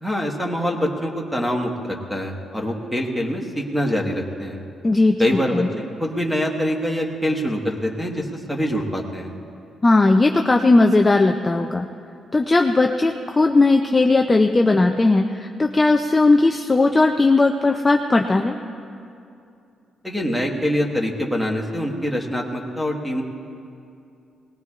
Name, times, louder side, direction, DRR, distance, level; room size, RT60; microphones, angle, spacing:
voice 1, 0.0-4.6 5.2-5.6 6.0-9.3 20.0-23.2, equal, ahead, 0 dB, 1.3 m, -24 dB
voice 2, 4.8-5.7 9.8-11.9 12.3-18.5, left 2 dB, 15° left, 3 dB, 0.4 m, -17 dB
20.5 x 19.5 x 2.4 m, 2.6 s
cardioid pair, 155°, 0 cm